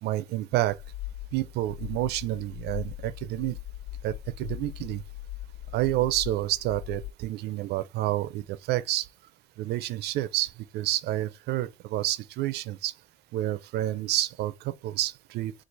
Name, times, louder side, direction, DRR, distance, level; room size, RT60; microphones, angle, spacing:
voice 1, 0.0-0.8 1.3-3.6 4.0-5.0 5.7-9.1 9.6-12.9 13.3-15.5, right 15 dB, 80° right, 0.5 m, -29 dB
sound 1, 0.7-7.1, left 13 dB, 75° left, 0.4 m, -40 dB
4.6 x 2.4 x 3.8 m
cardioid pair, 110°, 17 cm